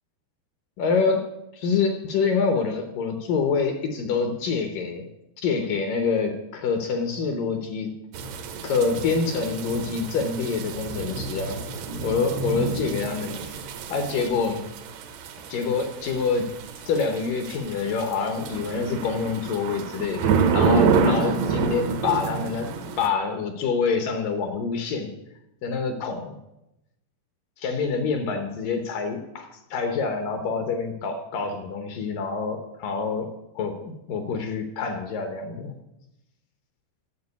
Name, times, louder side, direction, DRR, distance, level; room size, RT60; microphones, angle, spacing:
voice 1, 0.8-1.2 1.5-5.1 5.4-7.9 8.6-11.6 12.0-13.6 13.9-14.6 15.5-16.5 16.9-22.7 23.0-25.1 25.6-26.4 27.6-35.8, left 5 dB, 70° left, 6 dB, 2.3 m, -26 dB
sound 1, 8.1-23.1, right 5 dB, 85° right, 3.1 m, -28 dB
9.8 x 7.5 x 9.3 m, 0.90 s
omnidirectional pair, 4.7 m